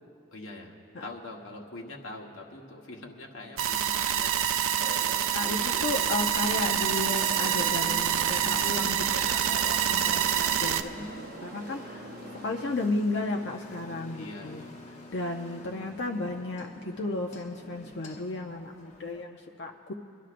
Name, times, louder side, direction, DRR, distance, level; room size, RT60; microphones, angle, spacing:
voice 1, 0.3-0.7 1.0-4.6 8.7-9.1 14.1-14.7, left 2 dB, 85° left, -1 dB, 1.2 m, -43 dB
sound 1, 3.6-10.8, right 9 dB, 85° right, 0.4 m, -26 dB
sound 2, 4.8-12.7, right 3 dB, 45° right, 0.6 m, -43 dB
Engine, 5.2-19.2, left 1 dB, 35° left, 1.0 m, -47 dB
voice 2, 5.3-12.1 12.4-14.6 15.1-19.9, left 2 dB, 55° left, 3 dB, 0.5 m, -34 dB
29.0 x 11.5 x 2.5 m, 2.6 s
head